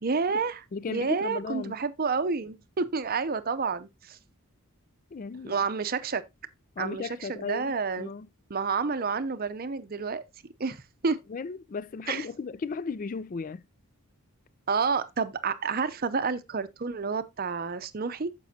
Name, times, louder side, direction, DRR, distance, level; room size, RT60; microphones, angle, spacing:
voice 1, 0.0-4.2 5.5-6.2 6.8-8.1 8.5-10.2 10.6-11.2 12.1-12.3 14.7-18.3, right 5 dB, 40° right, 0.6 m, -29 dB
voice 2, 0.7-1.8 5.1-5.5 6.8-8.3 11.3-13.6, left 4 dB, 40° left, 0.3 m, -35 dB
9.3 x 6.9 x 2.8 m
head